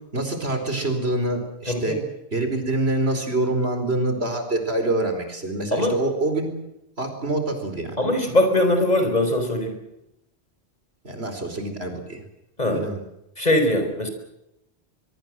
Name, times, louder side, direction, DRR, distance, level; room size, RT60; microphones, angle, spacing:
voice 1, 0.1-2.0 2.3-6.5 7.0-8.0 11.0-12.2 12.7-13.0, right 2 dB, 75° right, 6 dB, 4.9 m, -25 dB
voice 2, 1.7-2.0 5.7-6.0 8.0-9.7 12.6-12.8 13.4-14.1, left 1 dB, 40° left, 5 dB, 5.1 m, -21 dB
24.0 x 23.0 x 7.7 m, 0.87 s
omnidirectional pair, 1.1 m